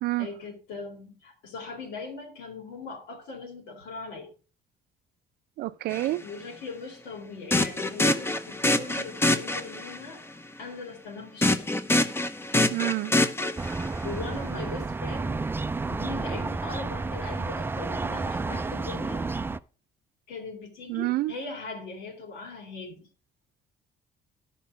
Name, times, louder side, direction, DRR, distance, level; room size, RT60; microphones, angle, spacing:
voice 1, 0.2-4.3 6.2-11.7 14.0-15.4 15.9-19.3 20.3-23.1, left 4 dB, 85° left, 3.5 m, -40 dB
voice 2, 5.6-6.2 12.7-13.1 20.9-21.3, right 17 dB, 70° right, 0.5 m, -28 dB
sound 1, 5.9-6.1 7.5-10.0 11.4-14.0, left 1 dB, 15° left, 0.8 m, -25 dB
sound 2, 13.6-19.6, right 3 dB, 15° right, 0.4 m, -31 dB
11.5 x 5.7 x 5.1 m
cardioid pair, 110°, 17 cm